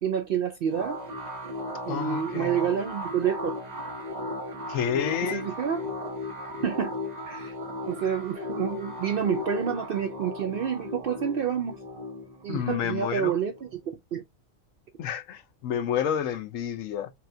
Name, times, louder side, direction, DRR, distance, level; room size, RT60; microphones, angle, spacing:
voice 1, 0.0-1.0 1.9-3.6 4.9-5.8 6.6-6.9 7.3-7.5 7.9-11.8 12.4-13.8 14.1-14.2, right 8 dB, 65° right, 0.5 m, -28 dB
sound 1, 0.7-13.9, left 2 dB, 40° right, 0.8 m, -36 dB
voice 2, 1.9-2.6 4.7-5.5 12.5-13.3 15.0-17.1, left 9 dB, 80° left, 1.1 m, -30 dB
5.8 x 2.3 x 2.7 m
omnidirectional pair, 1.4 m